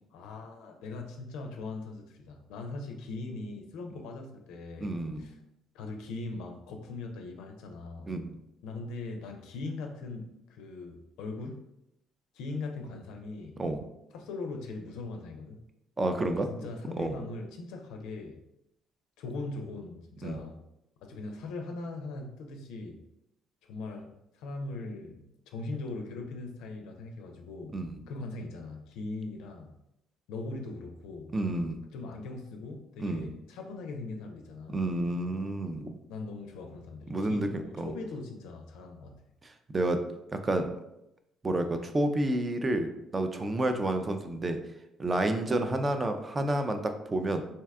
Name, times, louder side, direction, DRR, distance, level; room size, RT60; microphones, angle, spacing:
voice 1, 0.1-5.4 5.7-8.1 8.6-11.7 12.3-13.6 14.1-15.6 16.5-18.4 19.2-20.6 21.0-23.0 23.7-27.8 28.1-29.8 30.3-31.3 31.9-34.8 36.1-39.2, left 3 dB, 85° left, 3 dB, 0.4 m, -40 dB
voice 2, 4.8-5.3 8.1-8.4 13.6-13.8 16.0-16.5 17.0-17.1 20.2-20.4 27.7-27.9 31.3-31.8 33.0-33.3 34.7-36.0 37.1-37.5 37.8-37.9 39.7-40.0 40.4-40.7 41.4-44.6 45.0-47.4, right 1 dB, 25° right, 7 dB, 0.4 m, -29 dB
2.7 x 2.3 x 3.4 m, 0.85 s
cardioid pair, 95°, 0 cm